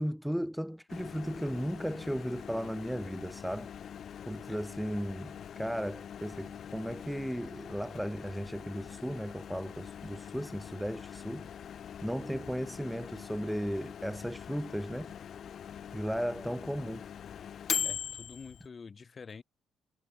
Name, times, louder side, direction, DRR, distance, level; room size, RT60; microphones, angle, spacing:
voice 1, 0.0-3.7 4.3-11.5 12.0-15.1 15.9-17.0, equal, ahead, 0.6 m, -35 dB
Microwave oven, 0.9-18.7, left 8 dB, 60° left, 0.5 m, -42 dB
voice 2, 17.8-19.4, left 5 dB, 35° left, 3.0 m, -47 dB
cardioid pair, 90°, 0 cm